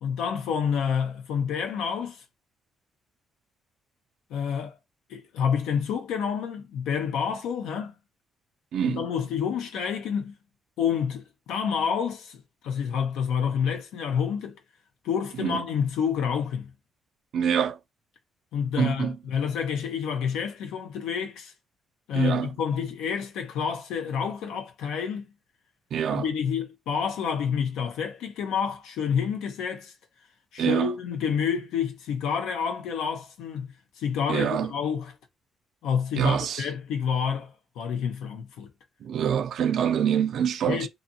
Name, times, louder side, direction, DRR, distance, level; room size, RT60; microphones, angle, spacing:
voice 1, 0.0-2.2 4.3-4.8 5.1-7.9 8.8-10.3 10.8-14.6 15.0-16.7 18.5-21.5 22.1-25.3 26.1-29.9 30.5-33.7 34.0-35.1 35.8-38.7 40.7-40.9, left 7 dB, 90° left, 0.5 m, -28 dB
voice 2, 8.7-9.1 15.4-15.6 17.3-17.8 18.8-19.1 22.1-22.5 25.9-26.3 30.6-30.9 34.3-34.7 36.1-36.7 39.0-40.9, right 8 dB, 70° right, 0.3 m, -25 dB
2.6 x 2.4 x 2.7 m
cardioid pair, 90°, 0 cm